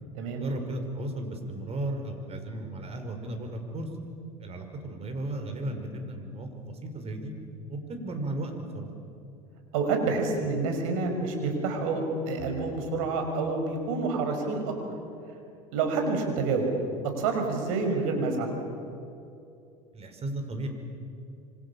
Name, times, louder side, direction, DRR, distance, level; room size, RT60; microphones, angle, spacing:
voice 1, 0.4-3.9 4.4-7.3 7.7-8.9 19.9-20.7, right 1 dB, 35° right, 5 dB, 5.6 m, -35 dB
voice 2, 9.7-14.7 15.7-16.7 17.2-18.5, right 3 dB, 70° right, 4 dB, 5.9 m, -28 dB
27.5 x 25.5 x 7.3 m, 2.6 s
hypercardioid pair, 80°, 18 cm